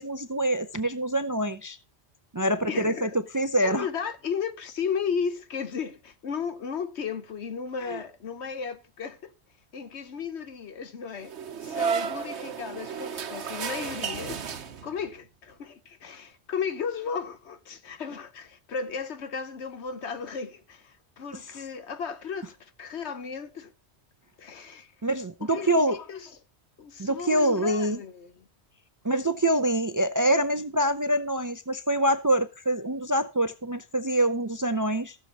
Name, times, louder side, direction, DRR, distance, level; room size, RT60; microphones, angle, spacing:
voice 1, 0.0-1.8 2.3-3.1 3.3-3.9 7.9-8.0 25.0-26.0 27.0-28.0 29.0-35.2, right 1 dB, 25° right, 0.4 m, -25 dB
voice 2, 2.7-3.2 3.6-9.3 9.7-11.3 11.6-14.5 14.8-23.7 24.4-24.9 25.4-26.3 26.8-28.4, left 6 dB, 75° left, 1.3 m, -34 dB
sound 1, 11.2-15.1, right 6 dB, 80° right, 1.2 m, -32 dB
15.5 x 7.0 x 4.0 m
omnidirectional pair, 1.1 m